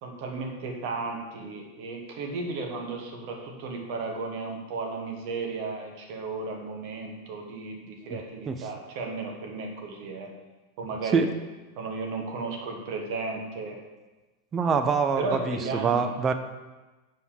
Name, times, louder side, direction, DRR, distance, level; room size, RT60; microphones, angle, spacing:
voice 1, 0.0-10.3 10.8-11.3 11.8-13.8 15.2-16.1, right 3 dB, 45° right, 1 dB, 1.3 m, -34 dB
voice 2, 14.5-16.3, right 5 dB, 25° right, 8 dB, 0.6 m, -25 dB
5.5 x 4.5 x 6.3 m, 1.2 s
figure-of-eight pair, 90°, 0 cm